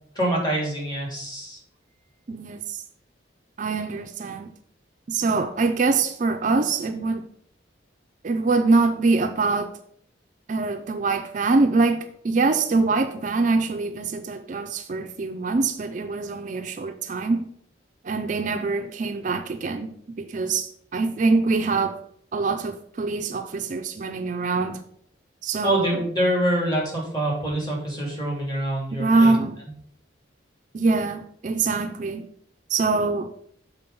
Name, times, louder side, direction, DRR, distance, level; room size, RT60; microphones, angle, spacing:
voice 1, 0.2-1.6 25.6-29.3, right 1 dB, 20° left, 2.5 m, -25 dB
voice 2, 2.3-2.8 3.6-4.5 5.1-7.3 8.2-9.7 10.5-17.5 18.0-22.0 22.3-24.8 25.4-26.0 28.9-29.6 30.7-32.2 32.7-33.3, right 3 dB, 40° right, 0.4 m, -24 dB
6.9 x 4.2 x 5.2 m
head